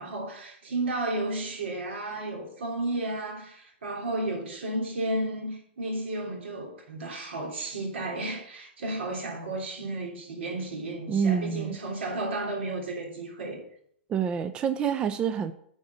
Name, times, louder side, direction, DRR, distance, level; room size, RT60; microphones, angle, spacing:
voice 1, 0.0-13.6, right 2 dB, 80° right, 3.2 m, -33 dB
voice 2, 11.1-11.8 14.1-15.5, right 7 dB, 15° right, 0.3 m, -27 dB
9.5 x 4.8 x 6.3 m
hypercardioid pair, 155°, 6 cm